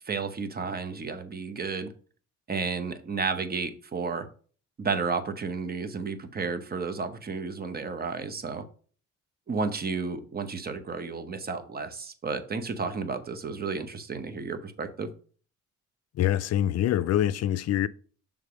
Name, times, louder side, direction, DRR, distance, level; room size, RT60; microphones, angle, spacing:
voice 1, 0.1-1.9 2.5-4.3 4.8-8.6 9.5-15.1, right 4 dB, 30° right, 0.9 m, -32 dB
voice 2, 16.2-17.9, left 11 dB, 60° left, 0.5 m, -25 dB
6.6 x 3.6 x 5.0 m
cardioid pair, 90°, 30 cm